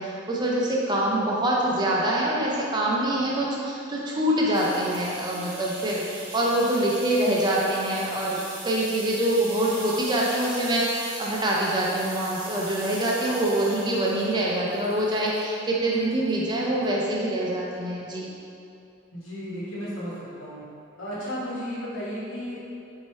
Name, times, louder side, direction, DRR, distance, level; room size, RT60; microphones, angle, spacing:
voice 1, 0.0-8.4 8.6-18.3, right 1 dB, 20° right, -4 dB, 0.5 m, -25 dB
sound 1, 4.5-15.5 15.9-16.5 16.8-16.9, right 1 dB, 45° right, 1.0 m, -40 dB
voice 2, 19.1-20.6 21.0-22.6, equal, 80° left, -8 dB, 1.2 m, -34 dB
4.3 x 2.7 x 3.1 m, 2.6 s
head